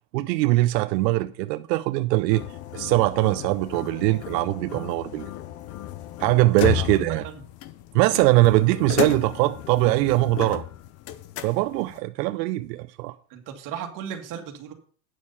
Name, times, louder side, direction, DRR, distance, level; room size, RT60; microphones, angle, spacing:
voice 1, 0.1-2.4 2.7-5.3 6.2-7.2 7.9-10.6 11.4-13.1, right 18 dB, 80° right, 0.6 m, -22 dB
sound 1, 2.3-12.0, left 12 dB, 30° left, 0.5 m, -33 dB
voice 2, 6.7-7.0 7.2-7.4 13.3-14.7, right 8 dB, 40° right, 2.0 m, -36 dB
9.3 x 6.3 x 5.5 m
supercardioid pair, 155°, 49 cm